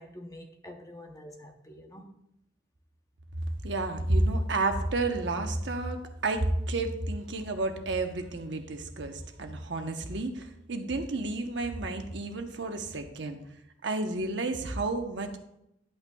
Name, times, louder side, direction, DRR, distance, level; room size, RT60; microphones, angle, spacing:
voice 1, 0.0-2.1, left 1 dB, 15° left, 0.8 m, -47 dB
voice 2, 3.6-13.4 13.8-15.4, right 2 dB, 70° right, 0.9 m, -31 dB
11.0 x 8.5 x 2.3 m
head